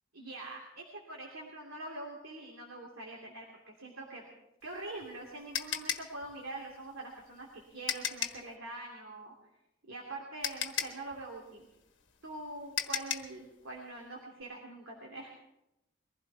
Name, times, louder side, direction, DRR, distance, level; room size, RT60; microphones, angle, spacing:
voice 1, 0.1-4.2 4.6-9.3 9.9-11.7 12.2-15.3, right 2 dB, 85° right, -1 dB, 2.9 m, -44 dB
sound 1, 4.6-8.5 9.9-10.0 10.4-13.4, left 9 dB, 60° left, 1.4 m, -36 dB
22.5 x 16.0 x 3.5 m, 0.88 s
head